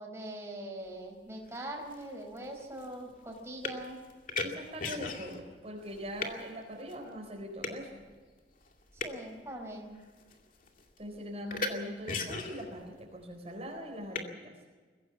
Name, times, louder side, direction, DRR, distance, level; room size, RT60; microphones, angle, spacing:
voice 1, 0.0-4.0 9.0-9.9, right 1 dB, 15° right, -1 dB, 4.7 m, -42 dB
sound 1, 1.4-1.5 1.9-5.5 5.8-6.4 6.9-7.0 7.6-7.8 8.7-9.3 9.9-10.3 10.6-11.0 11.5-11.7 12.1-12.8 14.1-14.2, left 3 dB, 45° left, 2.4 m, -37 dB
voice 2, 4.4-8.0 11.0-14.5, equal, 35° right, 0 dB, 4.1 m, -42 dB
22.5 x 16.5 x 7.2 m, 1.4 s
head